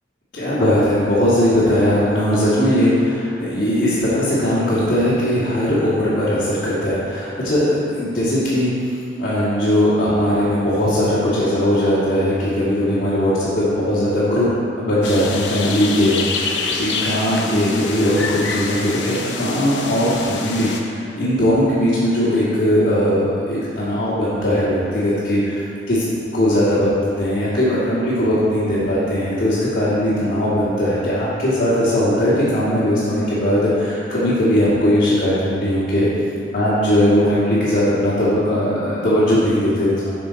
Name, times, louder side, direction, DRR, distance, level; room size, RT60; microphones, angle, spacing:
voice 1, 0.3-8.9 9.1-14.5 14.8-25.6 25.9-26.0 26.3-36.1 36.5-40.1, equal, 55° left, -11 dB, 2.1 m, -19 dB
sound 1, 15.0-20.8, left 4 dB, 85° left, 0.9 m, -26 dB
11.0 x 6.3 x 4.0 m, 2.4 s
head